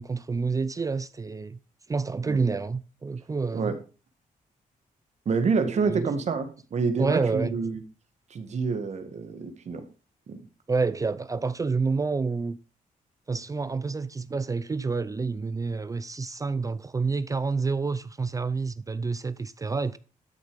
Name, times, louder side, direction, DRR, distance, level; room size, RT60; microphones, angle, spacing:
voice 1, 0.0-1.6 1.9-3.7 5.7-6.1 7.0-7.5 10.7-12.6 13.3-20.0, right 4 dB, 25° right, 0.5 m, -28 dB
voice 2, 5.3-7.8 8.3-9.8 10.3-10.4, right 4 dB, 55° right, 2.0 m, -27 dB
12.5 x 6.8 x 5.2 m
cardioid pair, 115°, 14 cm